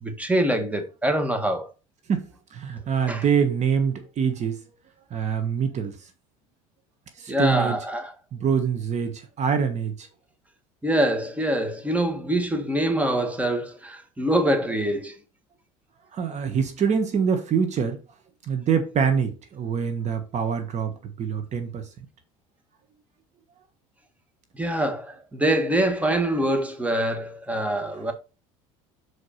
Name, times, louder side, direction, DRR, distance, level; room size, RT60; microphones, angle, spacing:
voice 1, 0.0-1.7 3.1-3.2 7.3-8.1 10.8-15.1 24.6-28.1, right 1 dB, 10° right, 1.7 m, -24 dB
voice 2, 2.1-4.6 5.1-5.9 7.2-7.8 8.3-10.1 16.1-18.0 18.5-21.8, right 6 dB, 40° right, 1.4 m, -25 dB
6.5 x 4.9 x 4.3 m
supercardioid pair, 90°, 17 cm